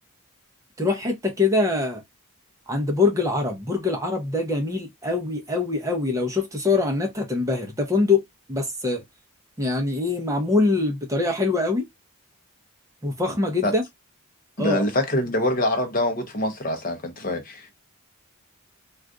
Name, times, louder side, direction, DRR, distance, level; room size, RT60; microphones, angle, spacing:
voice 1, 0.8-2.0 2.7-8.2 8.5-9.0 9.6-11.9 13.0-13.8 14.6-14.8, left 3 dB, 15° right, 0.7 m, -23 dB
voice 2, 14.6-17.7, left 1 dB, 40° left, 0.7 m, -25 dB
2.5 x 2.4 x 3.5 m
head